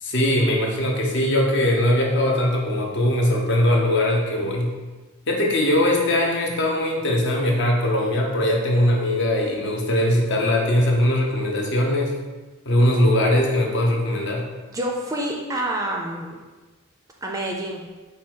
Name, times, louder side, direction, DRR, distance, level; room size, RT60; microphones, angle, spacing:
voice 1, 0.0-4.7 5.3-12.1 12.7-14.4, left 1 dB, 55° left, 0 dB, 0.7 m, -20 dB
voice 2, 14.7-16.4 17.2-17.9, right 1 dB, 15° right, -1 dB, 0.4 m, -27 dB
4.7 x 2.3 x 4.4 m, 1.2 s
head